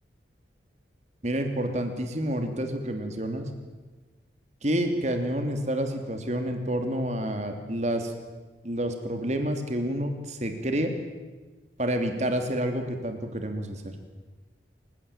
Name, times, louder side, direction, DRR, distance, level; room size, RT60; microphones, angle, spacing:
voice 1, 1.2-3.5 4.6-8.1 8.6-10.9 11.8-13.9, right 1 dB, 40° right, 6 dB, 3.0 m, -29 dB
27.5 x 16.5 x 9.1 m, 1.3 s
head